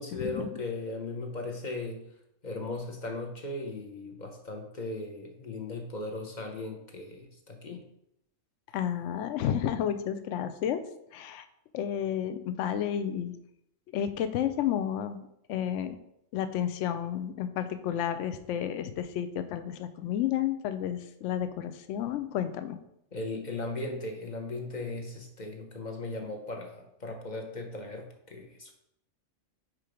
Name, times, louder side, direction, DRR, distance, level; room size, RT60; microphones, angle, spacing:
voice 1, 0.0-2.0 2.4-7.8 23.1-28.7, left 2 dB, 40° left, 4 dB, 0.8 m, -37 dB
voice 2, 8.7-10.8 11.1-11.5 11.7-13.3 13.9-16.0 16.3-22.8, left 10 dB, 70° left, 10 dB, 0.8 m, -31 dB
4.9 x 4.5 x 5.0 m, 0.78 s
omnidirectional pair, 1.4 m